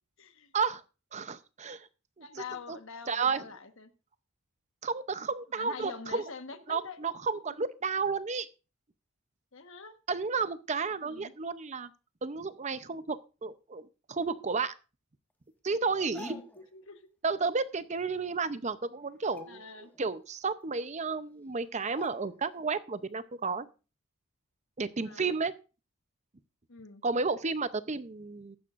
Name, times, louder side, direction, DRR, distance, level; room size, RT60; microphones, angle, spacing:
voice 1, 0.2-0.5 2.2-3.9 5.5-7.0 7.4-7.5 9.5-10.0 11.0-11.3 16.1-17.1 19.5-19.9 25.0-25.3 26.7-27.0, left 5 dB, 65° left, 8 dB, 1.3 m, -45 dB
voice 2, 1.1-1.9 2.2-2.8 3.1-3.4 4.8-6.2 6.7-8.5 10.1-11.9 12.2-14.7 15.6-16.4 17.2-19.6 20.0-23.7 24.8-25.5 27.0-28.6, right 4 dB, 30° right, 13 dB, 0.6 m, -32 dB
sound 1, 16.0-16.7 18.2-18.3 18.6-18.8 19.2-20.0 20.4-20.5 21.3-21.4 21.9-22.6 22.9-23.1, left 3 dB, 10° left, 1.3 m, -50 dB
15.0 x 11.5 x 2.5 m, 0.31 s
head